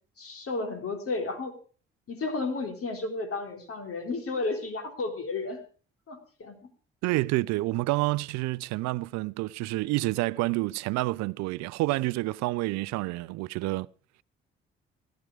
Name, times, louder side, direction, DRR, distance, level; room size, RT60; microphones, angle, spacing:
voice 1, 0.2-1.5 2.1-5.6 6.1-6.6, left 3 dB, 50° left, 3.8 m, -32 dB
voice 2, 7.0-13.9, right 20 dB, 70° right, 0.6 m, -28 dB
17.0 x 12.0 x 4.9 m
hypercardioid pair, 45°, 29 cm